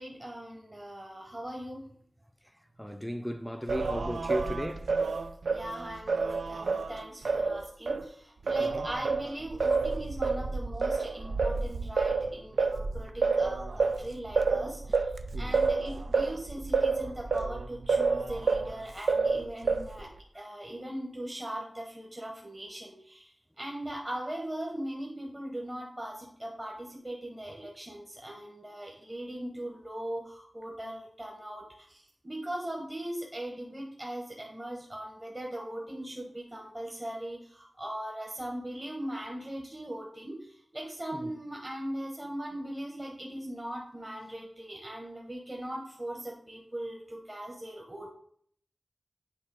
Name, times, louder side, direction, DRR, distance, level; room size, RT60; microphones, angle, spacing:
voice 1, 0.0-1.9 5.5-48.1, right 1 dB, 25° right, 1.0 m, -40 dB
voice 2, 2.8-4.9 8.6-8.9 15.3-15.6 41.1-41.3, equal, 5° left, 0.4 m, -35 dB
Singing, 3.7-8.0 8.5-18.7 19.1-20.1, right 4 dB, 85° right, 0.4 m, -29 dB
8.1 x 3.2 x 4.7 m
wide cardioid pair, 65°, 0 cm